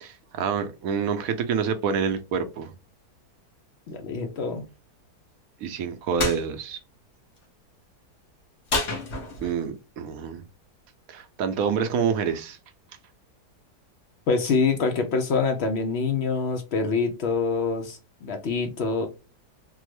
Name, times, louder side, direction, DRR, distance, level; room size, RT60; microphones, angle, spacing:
voice 1, 0.0-2.7 5.6-6.8 9.4-10.4 11.1-12.6, right 6 dB, 70° right, 0.9 m, -27 dB
voice 2, 3.9-4.7 14.3-19.1, left 4 dB, 75° left, 0.6 m, -25 dB
sound 1, 6.2-6.4 8.7-9.6, left 3 dB, 50° left, 1.0 m, -28 dB
3.6 x 2.0 x 3.0 m
omnidirectional pair, 1.8 m